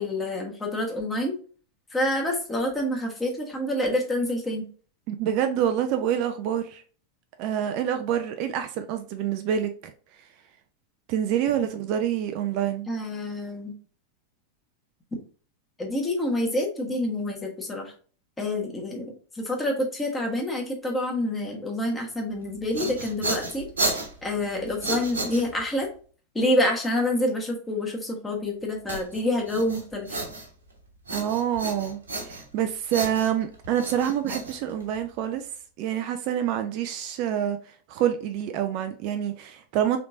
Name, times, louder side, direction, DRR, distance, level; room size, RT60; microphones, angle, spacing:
voice 1, 0.0-1.3 1.9-4.6 12.9-13.7 15.8-17.9 18.4-23.7 24.2-25.9 26.3-30.2, left 1 dB, 10° left, 1.2 m, -27 dB
voice 2, 5.1-6.8 7.4-9.9 11.1-12.9 31.1-35.5 35.8-37.6 37.9-40.0, right 9 dB, 45° right, 0.4 m, -27 dB
sound 1, 22.4-25.8 28.9-30.7 31.1-32.6 32.9-35.2, right 2 dB, 70° right, 1.1 m, -32 dB
3.8 x 3.4 x 2.5 m
figure-of-eight pair, 90°, 0 cm